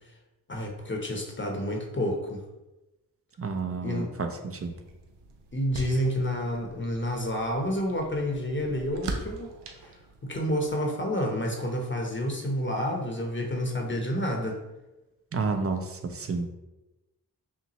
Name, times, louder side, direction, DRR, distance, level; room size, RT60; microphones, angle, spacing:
voice 1, 0.5-2.4 3.8-4.1 5.5-9.5 9.8-14.6, equal, 30° left, 1 dB, 0.8 m, -29 dB
voice 2, 3.4-4.8 15.3-16.5, right 4 dB, 35° right, 6 dB, 0.5 m, -30 dB
sound 1, 4.6-10.7, right 3 dB, 85° right, 0.6 m, -42 dB
5.8 x 2.2 x 2.9 m, 1.0 s
cardioid pair, 50°, 41 cm